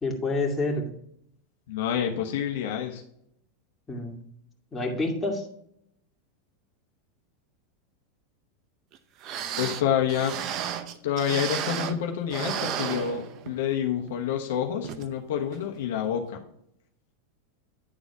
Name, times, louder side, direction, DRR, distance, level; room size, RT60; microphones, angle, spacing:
voice 1, 0.0-0.9 3.9-4.2 4.7-5.4, left 2 dB, 15° left, -1 dB, 2.4 m, -28 dB
voice 2, 1.7-3.0 9.6-10.4 11.0-16.4, left 9 dB, 70° left, 2 dB, 1.1 m, -28 dB
sound 1, 8.9-9.0 9.2-12.0 12.3-13.7 14.1-14.2 14.8-15.1 15.5-15.6, right 9 dB, 45° right, 0.7 m, -33 dB
10.0 x 4.1 x 4.7 m, 0.71 s
hypercardioid pair, 105°, 0 cm